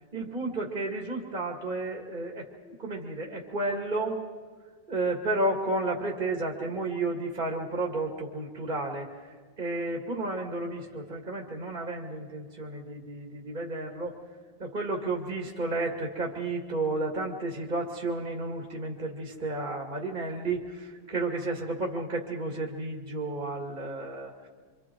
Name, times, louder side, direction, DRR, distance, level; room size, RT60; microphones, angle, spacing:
voice 1, 0.1-4.2 4.9-14.2 14.6-24.5, right 2 dB, 40° right, 0 dB, 2.4 m, -32 dB
26.5 x 26.0 x 4.6 m, 1.5 s
omnidirectional pair, 1.3 m